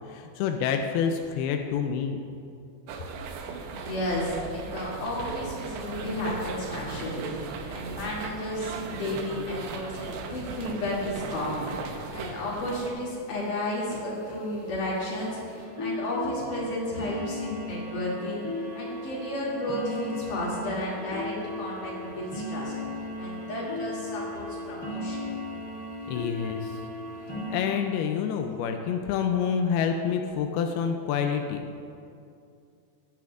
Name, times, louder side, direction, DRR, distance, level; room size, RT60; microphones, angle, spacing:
voice 1, 0.1-2.2 26.1-26.8 27.5-31.6, left 7 dB, 85° left, 4 dB, 2.2 m, -27 dB
sound 1, 2.9-12.9, right 4 dB, 85° right, 2.9 m, -37 dB
voice 2, 3.7-11.7 12.1-18.4 18.7-22.7 23.2-25.3, left 1 dB, 50° left, -6 dB, 3.9 m, -32 dB
sound 2, 7.9-8.0 8.3-8.4 8.6-8.8 9.1-9.4 10.2-10.3 10.8-10.9 11.3-11.4 11.8-11.9 12.4-12.5 12.9-13.1 13.5-13.6 13.9-27.6, left 2 dB, 15° left, 1.2 m, -37 dB
19.5 x 9.2 x 2.5 m, 2.5 s
omnidirectional pair, 5.0 m